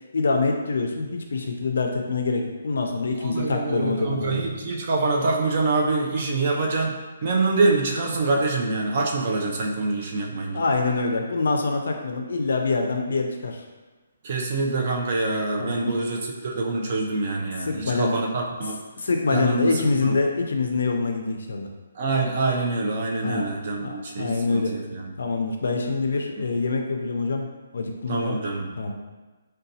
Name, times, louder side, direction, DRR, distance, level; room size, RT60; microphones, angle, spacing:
voice 1, 0.1-4.5 10.5-13.6 15.6-15.9 17.6-18.1 19.0-21.7 23.2-23.5 23.8-24.7 25.2-27.5 27.7-28.4 28.8-28.9, left 3 dB, 65° left, 3 dB, 0.4 m, -25 dB
voice 2, 3.2-7.0 7.2-10.6 14.2-18.8 19.3-20.2 22.0-25.1 26.4-26.5 28.1-28.7, right 3 dB, 30° right, 0 dB, 0.4 m, -25 dB
3.9 x 2.2 x 2.7 m, 1.2 s
hypercardioid pair, 180°, 0 cm